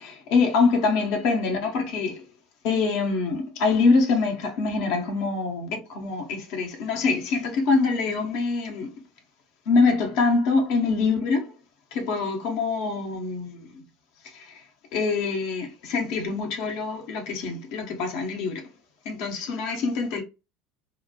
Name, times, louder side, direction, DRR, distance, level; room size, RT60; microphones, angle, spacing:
voice 1, 0.0-2.2 2.6-8.9 9.7-11.5 11.9-13.7 14.3-14.6 14.9-18.7 19.0-20.2, left 4 dB, 60° left, 0.7 m, -24 dB
2.9 x 2.1 x 2.3 m
figure-of-eight pair, 70°, 0 cm